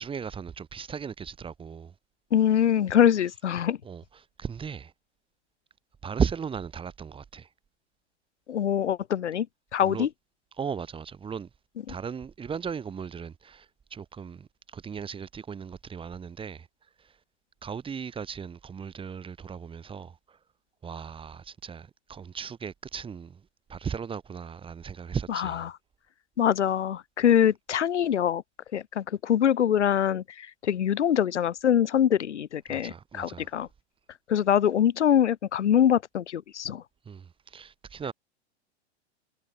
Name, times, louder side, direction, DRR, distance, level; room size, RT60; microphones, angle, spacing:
voice 1, 0.0-1.9 3.8-4.0 4.4-4.9 6.0-7.5 9.8-10.1 10.6-11.5 11.9-13.7 13.9-16.7 17.0-17.1 17.6-20.4 20.8-23.4 23.7-25.6 32.7-33.5 37.1-38.1, right 6 dB, 15° right, 1.1 m, -36 dB
voice 2, 2.3-3.8 8.5-9.5 9.7-10.1 11.9-12.0 25.3-25.5 26.4-28.4 28.7-33.7 34.3-36.8, left 9 dB, 90° left, 0.7 m, -24 dB
hypercardioid pair, 105°, 34 cm